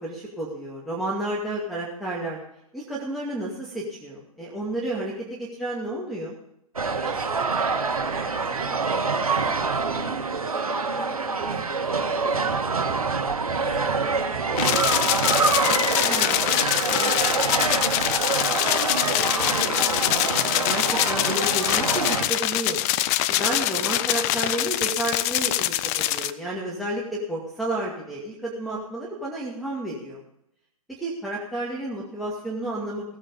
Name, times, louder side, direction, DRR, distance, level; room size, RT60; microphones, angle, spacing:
voice 1, 0.0-2.4 2.7-6.3 16.0-16.4 16.9-17.1 20.4-22.8 23.3-30.2 31.0-33.0, right 1 dB, ahead, -7 dB, 2.3 m, -31 dB
sound 1, 6.8-22.3, right 4 dB, 75° right, 1.6 m, -26 dB
voice 2, 7.0-9.1 9.4-13.1 13.5-16.8 17.2-19.9 20.2-20.4, right 5 dB, 25° right, -1 dB, 3.6 m, -39 dB
sound 2, 14.6-26.3, left 14 dB, 25° left, 0.5 m, -24 dB
17.0 x 8.8 x 5.3 m, 0.78 s
figure-of-eight pair, 120°, 19 cm